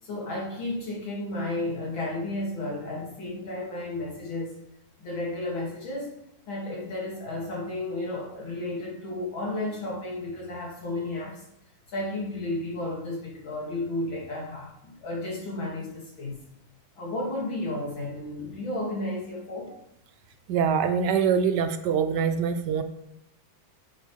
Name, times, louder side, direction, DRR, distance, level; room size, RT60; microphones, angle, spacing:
voice 1, 0.0-4.6 5.0-6.1 6.5-11.4 11.9-16.4 17.0-19.7, left 2 dB, 85° left, -3 dB, 3.3 m, -33 dB
voice 2, 20.5-22.8, right 7 dB, 70° right, 7 dB, 1.1 m, -24 dB
7.3 x 6.5 x 5.0 m, 0.80 s
omnidirectional pair, 2.1 m